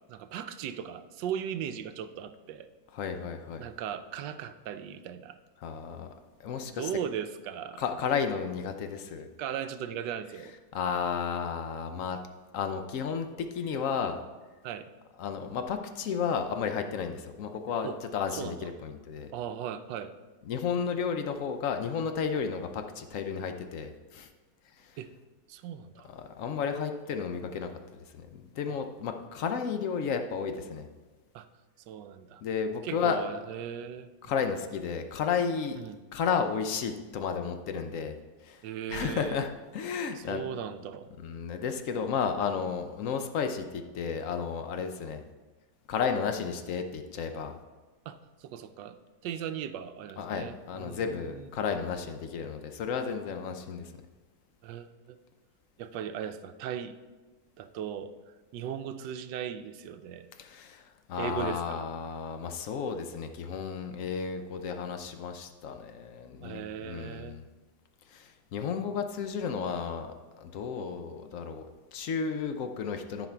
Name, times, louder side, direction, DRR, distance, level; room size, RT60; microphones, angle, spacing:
voice 1, 0.0-2.7 3.6-5.4 6.6-7.8 9.4-10.5 14.6-14.9 17.8-18.0 18.4-18.7 19.3-20.1 25.0-25.1 25.5-26.1 31.3-31.5 31.9-32.4 32.8-34.1 35.8-36.0 38.6-39.4 40.1-41.1 48.1-49.0 49.2-51.5 54.6-55.2 55.8-57.0 57.6-58.1 58.5-60.3 61.2-61.9 66.4-67.4, right 9 dB, 75° right, 10 dB, 1.2 m, -38 dB
voice 2, 2.9-3.6 5.6-6.1 6.4-6.9 7.8-9.3 10.7-12.2 12.5-14.2 15.2-19.3 20.4-24.3 24.8-24.9 26.1-27.7 28.2-30.8 32.4-33.3 34.2-35.8 36.1-38.1 38.4-38.6 38.9-40.4 41.2-45.2 45.9-47.5 50.2-53.9 60.4-67.4 68.1-70.1 70.4-73.3, left 6 dB, 65° left, 7 dB, 0.8 m, -33 dB
13.5 x 4.9 x 4.4 m, 1.2 s
omnidirectional pair, 2.1 m